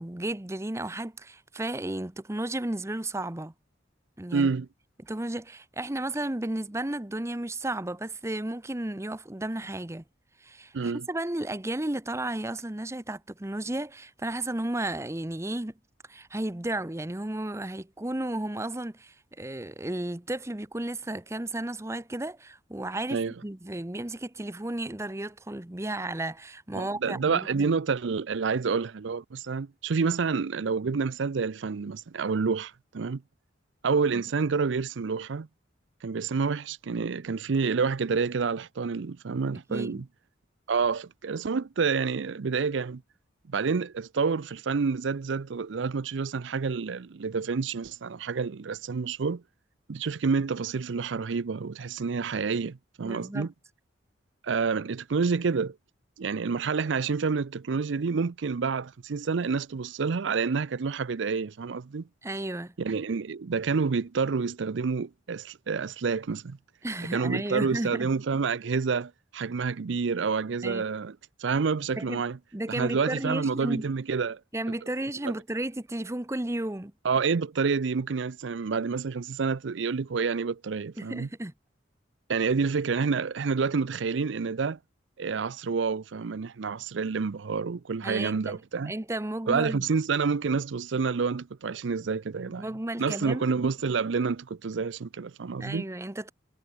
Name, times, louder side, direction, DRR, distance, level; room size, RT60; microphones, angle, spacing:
voice 1, 0.0-3.5 4.2-4.5 5.0-10.0 10.4-15.7 16.1-27.7 34.1-34.2 39.7-40.0 53.0-53.5 62.2-62.7 66.8-68.1 70.6-70.8 72.0-72.2 72.5-73.8 74.5-76.9 81.0-81.5 88.0-88.6 88.9-89.9 92.6-93.5 95.6-96.3, right 1 dB, 15° right, 0.8 m, -33 dB
voice 2, 4.3-4.7 10.7-11.1 23.1-23.3 26.7-33.2 33.8-35.5 36.0-40.1 40.7-43.0 43.5-49.4 49.9-53.5 54.4-55.8 56.2-62.0 62.8-66.6 67.1-72.4 72.7-74.4 75.2-75.3 77.0-81.3 82.3-84.8 85.2-88.9 89.5-92.6 93.0-95.9, right 5 dB, 75° right, 0.5 m, -28 dB
head